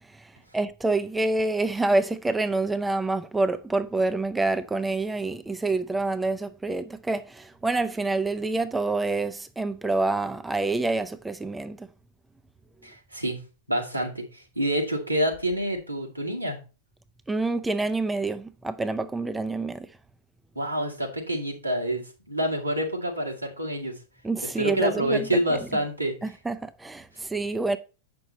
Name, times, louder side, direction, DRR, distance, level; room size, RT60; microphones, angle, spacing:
voice 1, 0.5-11.9 17.3-19.9 24.2-25.3 26.2-27.8, right 2 dB, 10° right, 0.5 m, -27 dB
voice 2, 12.8-13.4 13.7-16.6 20.6-24.0 24.6-26.1, right 1 dB, 90° right, 2.1 m, -27 dB
7.7 x 6.0 x 4.2 m
figure-of-eight pair, 90°, 0 cm